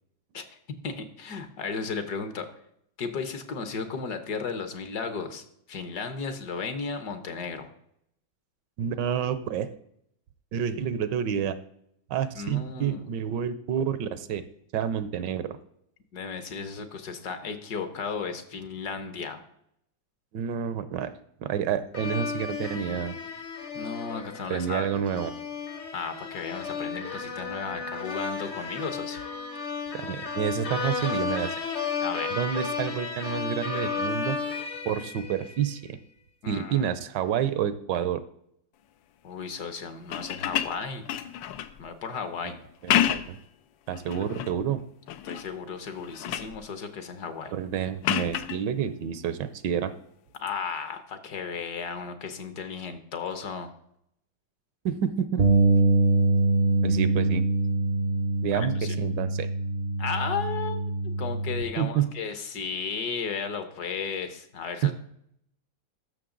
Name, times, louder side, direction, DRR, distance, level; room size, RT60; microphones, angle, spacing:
voice 1, 0.8-2.5 3.0-7.7 12.3-13.1 16.1-19.4 23.7-24.9 25.9-29.2 32.0-32.3 36.4-36.9 39.2-41.1 41.8-42.5 45.2-47.5 50.4-53.7 58.5-59.0 60.0-60.8 61.2-64.9, left 5 dB, 60° left, 9 dB, 1.4 m, -34 dB
voice 2, 8.8-9.7 10.5-11.6 12.1-14.4 14.7-15.6 20.3-21.1 21.4-23.1 24.5-25.3 29.9-31.6 32.3-34.4 34.8-36.0 36.5-38.2 42.4-42.6 42.8-43.4 43.9-44.8 47.5-49.9 54.8-55.5 56.8-57.4 58.4-59.5 61.8-62.1 64.8-64.9, right 9 dB, 75° right, 13 dB, 1.2 m, -29 dB
sound 1, 21.9-35.6, left 5 dB, 40° left, 0.8 m, -33 dB
sound 2, 40.0-41.8 42.7-43.4 43.9-44.6 45.1-45.5 45.9-46.6 48.0-48.6 50.3-50.5, left 11 dB, 80° left, 1.3 m, -29 dB
Bass guitar, 55.4-61.6, right 3 dB, 55° right, 0.6 m, -24 dB
14.0 x 6.4 x 3.8 m, 0.74 s
omnidirectional pair, 2.0 m